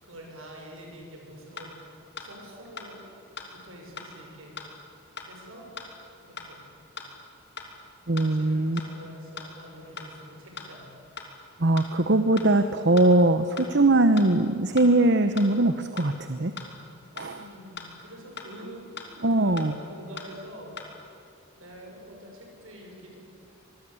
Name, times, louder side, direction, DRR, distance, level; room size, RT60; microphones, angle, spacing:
voice 1, 0.0-3.1 3.5-4.6 5.2-5.7 6.2-6.7 8.1-10.9 17.3-19.0 19.3-20.7 21.6-23.2, equal, 70° right, 1 dB, 6.8 m, -46 dB
sound 1, 1.6-1.7 2.2-2.3 2.8-2.9 3.4-3.5 4.0-4.1 4.6-4.7 5.2-5.3 5.8-5.9 6.4-6.5 7.0-7.1 7.6-7.7 8.2-8.3 8.8-8.9 9.4-9.5 10.0-10.1 10.6-10.7 11.2-11.3 11.8-11.9 12.4-12.5 13.0-13.1 13.6-13.7 14.2-14.3 14.8-14.9 15.4-15.5 16.0-16.1 16.6-16.7 17.2-17.3 17.8-17.9 18.4-18.5 19.0-19.1 19.6-19.7 20.2-20.3 20.8-20.9, left 5 dB, 50° left, 3.0 m, -39 dB
voice 2, 8.1-8.8 11.6-16.5 17.2-17.4 19.2-19.7, right 2 dB, 50° right, 9 dB, 0.9 m, -21 dB
25.5 x 22.0 x 8.5 m, 2.5 s
head